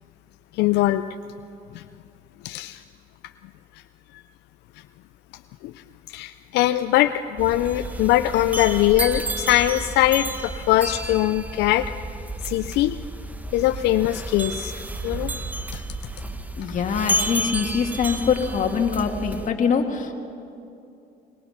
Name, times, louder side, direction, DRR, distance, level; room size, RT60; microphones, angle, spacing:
voice 1, 0.5-1.0 1.7-1.8 2.4-2.8 4.1-4.2 5.6-5.7 6.1-11.9 12.4-13.0 13.5-14.7 15.0-15.3 15.7-15.8, left 14 dB, 85° left, 11 dB, 0.5 m, -21 dB
sound 1, 7.4-19.5, right 1 dB, 10° right, 1.1 m, -31 dB
voice 2, 16.6-20.1, left 6 dB, 50° left, 4 dB, 2.1 m, -23 dB
22.5 x 21.0 x 5.8 m, 2.7 s
cardioid pair, 110°, 17 cm